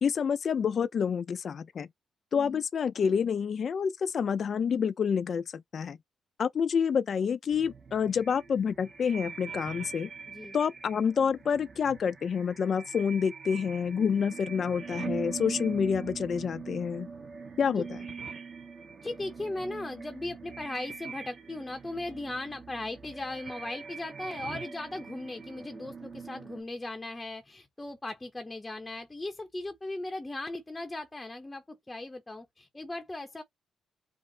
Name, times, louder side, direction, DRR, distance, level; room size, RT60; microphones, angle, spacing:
voice 1, 0.0-1.9 2.3-6.0 6.4-10.1 10.5-17.1 17.6-18.0, left 6 dB, 50° left, 0.5 m, -28 dB
sound 1, 7.5-26.6, right 5 dB, 40° right, 1.1 m, -42 dB
voice 2, 19.0-33.4, left 2 dB, 15° left, 0.7 m, -38 dB
5.1 x 2.1 x 2.8 m
cardioid pair, 120°, 0 cm